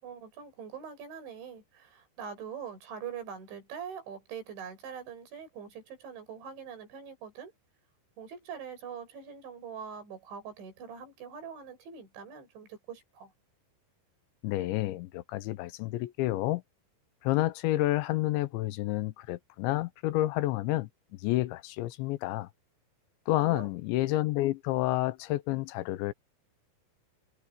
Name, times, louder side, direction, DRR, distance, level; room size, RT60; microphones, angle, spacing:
voice 1, 0.0-7.5 8.2-13.3 23.4-23.7, right 7 dB, 85° right, 7.5 m, -43 dB
voice 2, 14.4-16.6 17.2-22.5 23.3-26.1, left 17 dB, 85° left, 3.2 m, -29 dB
omnidirectional pair, 5.2 m